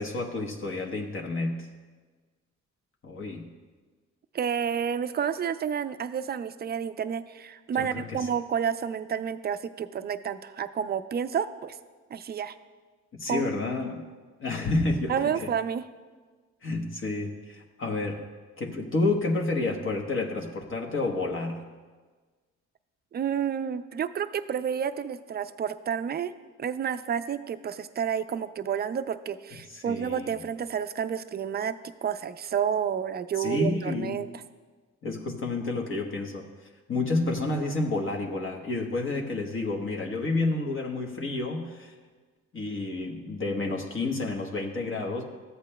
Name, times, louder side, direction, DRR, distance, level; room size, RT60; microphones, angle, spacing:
voice 1, 0.0-1.7 3.0-3.5 7.8-8.3 13.1-14.1 14.4-15.1 16.6-18.3 18.6-21.6 29.7-30.4 33.4-34.2 35.0-36.5 36.9-41.9 42.5-45.2, left 2 dB, 45° left, 0 dB, 1.1 m, -30 dB
voice 2, 4.3-11.8 12.1-12.6 13.3-13.4 15.1-15.8 23.1-26.3 26.6-31.8 32.0-34.3, right 8 dB, 35° right, 11 dB, 0.4 m, -30 dB
14.0 x 8.1 x 2.2 m, 1.4 s
cardioid pair, 90°, 30 cm